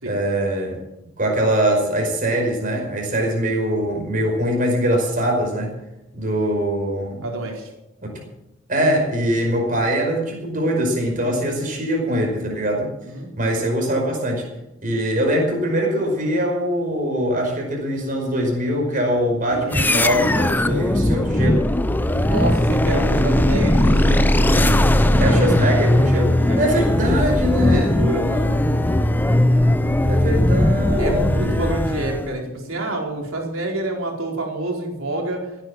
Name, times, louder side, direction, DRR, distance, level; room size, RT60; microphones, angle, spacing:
voice 1, 0.1-0.8 1.2-5.8 6.1-7.2 8.0-8.2 8.7-12.9 13.4-14.5 14.8-21.7 25.2-28.0 30.0-31.7, equal, 40° right, 1 dB, 5.3 m, -22 dB
voice 2, 7.2-7.7 11.2-11.6 13.1-13.3 22.2-25.6 26.5-26.7 27.6-28.6 31.0-35.4, right 1 dB, 70° right, 0 dB, 4.5 m, -28 dB
sound 1, 19.5-34.2, equal, 50° left, 2.0 m, -33 dB
sound 2, 19.7-32.4, left 1 dB, 10° left, 0.5 m, -18 dB
16.0 x 10.0 x 7.5 m, 0.93 s
head